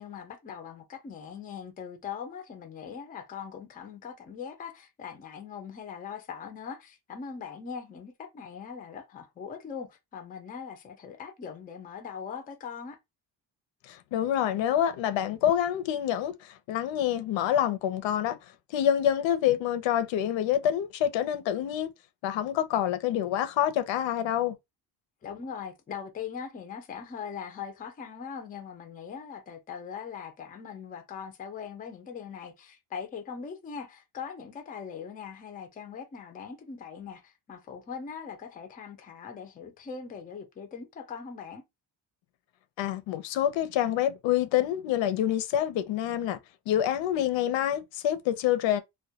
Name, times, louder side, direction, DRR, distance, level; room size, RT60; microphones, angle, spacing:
voice 1, 0.0-13.0 25.2-41.6, left 6 dB, 20° left, 0.3 m, -41 dB
voice 2, 13.9-18.4 18.7-21.9 22.2-24.6 42.8-46.4 46.7-48.8, left 11 dB, 90° left, 0.6 m, -27 dB
2.2 x 2.1 x 2.7 m
cardioid pair, 165°, 44 cm